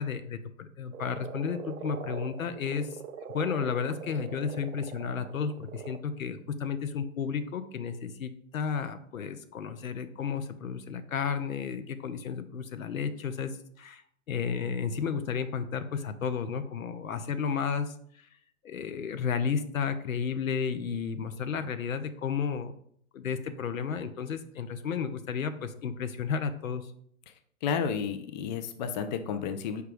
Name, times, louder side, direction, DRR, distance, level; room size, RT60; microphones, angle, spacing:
voice 1, 0.0-3.0 3.3-14.0 14.3-18.3 18.6-22.7 23.1-26.9, left 6 dB, 85° left, 10 dB, 0.6 m, -32 dB
Frog, 0.9-6.0, right 6 dB, 85° right, 0.5 m, -42 dB
voice 2, 27.6-29.8, left 7 dB, 35° left, 8 dB, 0.4 m, -31 dB
4.8 x 2.3 x 4.9 m, 0.64 s
hypercardioid pair, 125°, 40 cm